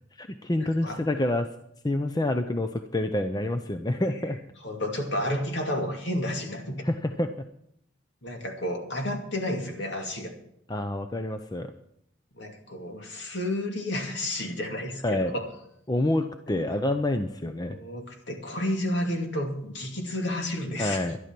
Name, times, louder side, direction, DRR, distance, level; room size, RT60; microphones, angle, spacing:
voice 1, 0.1-1.5 1.8-4.4 6.8-7.5 10.7-11.7 15.0-15.3 15.9-17.8 20.8-21.2, left 1 dB, 20° left, 7 dB, 0.6 m, -27 dB
voice 2, 4.6-6.8 8.2-10.3 12.3-15.4 16.7-16.8 17.7-21.0, left 1 dB, 65° left, 3 dB, 2.5 m, -31 dB
12.0 x 11.5 x 6.0 m, 0.74 s
head